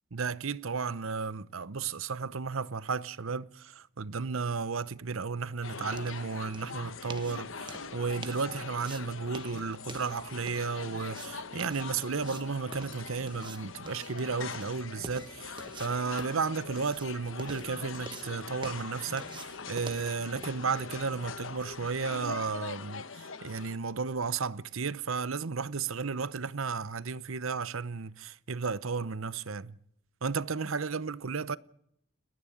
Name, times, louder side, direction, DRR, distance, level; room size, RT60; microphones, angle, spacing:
voice 1, 0.1-29.7 30.2-31.6, right 5 dB, 70° right, 0.8 m, -33 dB
sound 1, 4.9-22.6, right 3 dB, 20° right, 1.2 m, -49 dB
sound 2, 5.6-23.8, left 5 dB, 65° left, 1.1 m, -43 dB
29.0 x 11.0 x 9.8 m
head